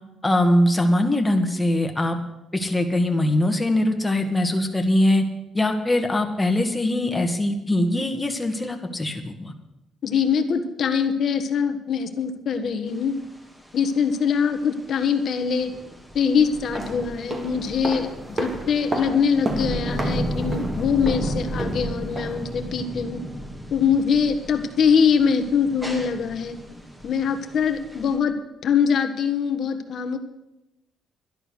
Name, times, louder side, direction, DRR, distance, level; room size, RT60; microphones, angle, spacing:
voice 1, 0.2-2.2 2.5-5.2 5.5-9.5, left 1 dB, 15° left, 4 dB, 1.8 m, -22 dB
voice 2, 10.0-13.2 13.7-15.7 16.1-23.2 23.7-26.6 27.0-30.2, left 6 dB, 60° left, 7 dB, 1.4 m, -23 dB
sound 1, 12.9-28.2, equal, 10° right, 2.5 m, -34 dB
sound 2, 16.5-22.5 22.8-22.9, right 2 dB, 30° right, 2.9 m, -33 dB
11.5 x 11.0 x 6.5 m, 0.93 s
cardioid pair, 90°, 0 cm